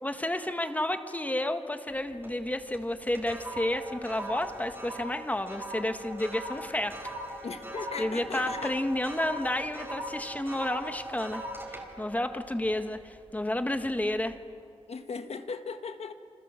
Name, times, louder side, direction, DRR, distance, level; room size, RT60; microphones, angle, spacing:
voice 1, 0.0-7.1 8.0-14.4, left 1 dB, 15° left, 8 dB, 1.6 m, -31 dB
sound 1, 1.9-2.4 2.7-13.3 13.8-14.1, right 1 dB, 20° right, 4.1 m, -40 dB
voice 2, 7.4-8.7 14.9-16.1, left 5 dB, 80° left, 8 dB, 1.5 m, -38 dB
28.5 x 26.5 x 7.6 m, 2.4 s
wide cardioid pair, 105°, 11 cm